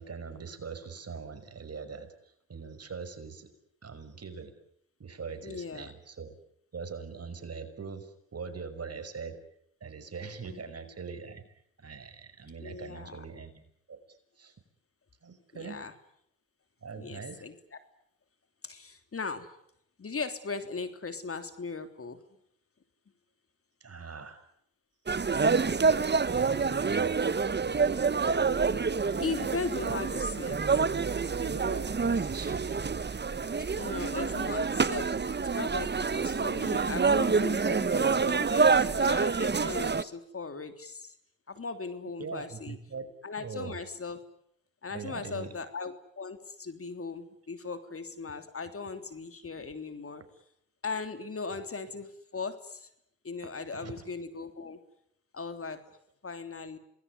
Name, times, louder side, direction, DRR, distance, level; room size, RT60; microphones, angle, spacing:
voice 1, 0.0-3.5 3.8-4.5 5.0-6.3 6.7-9.4 9.8-11.4 11.8-13.5 13.9-14.5 15.2-15.8 16.8-17.4 23.8-24.4 26.3-27.4 31.4-32.9 34.1-34.2 42.2-43.1 43.4-43.8 44.9-45.5 53.7-53.9, right 5 dB, 50° right, 9 dB, 5.8 m, -42 dB
voice 2, 5.4-5.9 10.5-10.6 12.6-13.2 15.5-15.9 17.0-17.5 18.6-19.5 20.0-22.2 28.6-28.7 29.2-30.8 33.7-41.1 41.5-42.8 43.2-44.2 44.8-50.2 50.8-52.9 53.2-54.8 55.3-55.8 56.2-56.8, left 4 dB, 45° left, 8 dB, 3.5 m, -38 dB
sound 1, 25.1-40.0, right 5 dB, 30° right, 1.3 m, -27 dB
27.5 x 20.5 x 9.8 m, 0.74 s
supercardioid pair, 50°, 33 cm